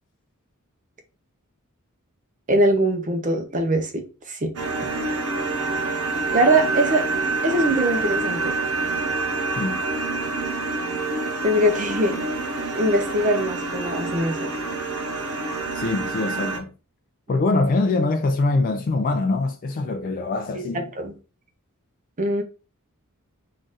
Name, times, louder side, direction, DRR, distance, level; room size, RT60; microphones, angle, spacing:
voice 1, 2.5-4.5 6.3-7.0 7.4-8.5 11.4-12.2 12.7-14.5 20.5-20.6 20.9-21.1 22.2-22.4, right 1 dB, 35° right, 0.7 m, -22 dB
sound 1, 4.6-16.6, right 3 dB, 80° right, 0.9 m, -27 dB
voice 2, 15.7-16.7 17.3-20.8, left 3 dB, 40° left, 0.3 m, -23 dB
3.7 x 2.5 x 3.8 m
head